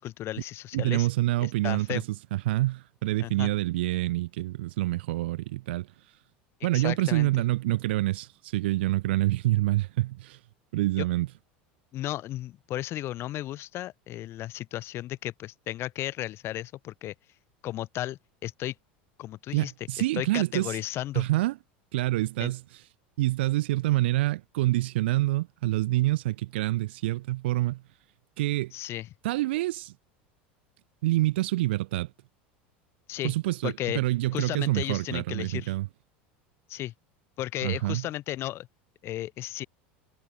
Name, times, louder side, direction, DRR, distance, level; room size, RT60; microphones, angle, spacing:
voice 1, 0.0-1.1 1.4-2.0 3.2-3.5 6.7-7.3 11.0-11.1 11.9-17.1 17.6-18.7 19.2-19.7 20.0-21.2 22.4-22.5 28.7-29.1 33.1-33.3 33.6-34.0 34.3-35.7 36.7-36.9 37.4-38.7 39.0-39.7, left 14 dB, 45° left, 2.4 m, -34 dB
voice 2, 0.7-2.0 2.3-5.9 6.6-10.4 10.7-11.3 19.5-20.8 21.1-21.6 21.9-22.6 23.2-27.8 28.4-28.7 29.2-29.9 31.0-32.1 33.2-35.9 37.6-38.0, right 17 dB, 80° right, 0.5 m, -27 dB
supercardioid pair, 105°, 6 cm